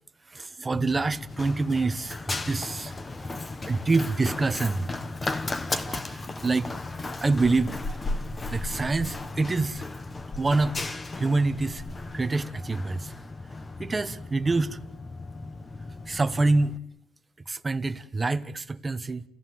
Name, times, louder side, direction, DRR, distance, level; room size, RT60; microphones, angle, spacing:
voice 1, 0.3-3.4 3.7-4.9 5.7-6.7 7.2-8.1 8.5-9.9 10.3-10.8 11.2-11.8 12.1-13.1 13.8-14.8 16.1-16.8 17.5-19.2, right 3 dB, 15° right, 1.0 m, -26 dB
Run, 0.7-16.8, left 2 dB, 20° left, 1.2 m, -35 dB
30.0 x 17.5 x 7.8 m
cardioid pair, 150°, 0 cm